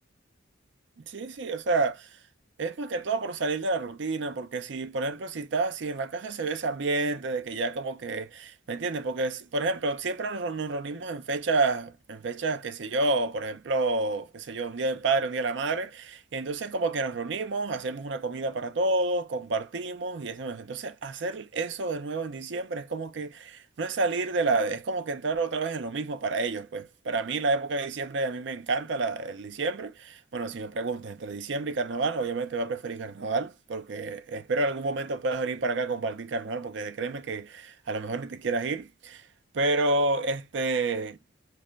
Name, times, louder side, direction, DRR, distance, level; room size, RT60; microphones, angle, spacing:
voice 1, 1.1-2.1 2.6-39.2 39.5-41.2, right 3 dB, 65° right, 0.5 m, -29 dB
3.2 x 2.1 x 2.3 m
head